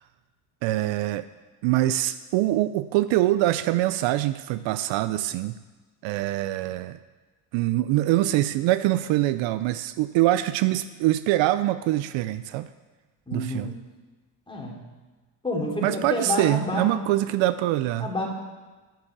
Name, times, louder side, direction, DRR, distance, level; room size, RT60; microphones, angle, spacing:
voice 1, 0.6-1.3 1.6-5.5 6.0-7.0 7.5-12.7 13.3-13.7 15.8-18.1, right 15 dB, 70° right, 14 dB, 0.6 m, -24 dB
voice 2, 13.3-13.8 14.5-14.8 15.4-17.0 18.0-18.3, left 2 dB, 10° left, -3 dB, 3.0 m, -29 dB
10.5 x 6.5 x 7.2 m, 1.3 s
supercardioid pair, 85°, 47 cm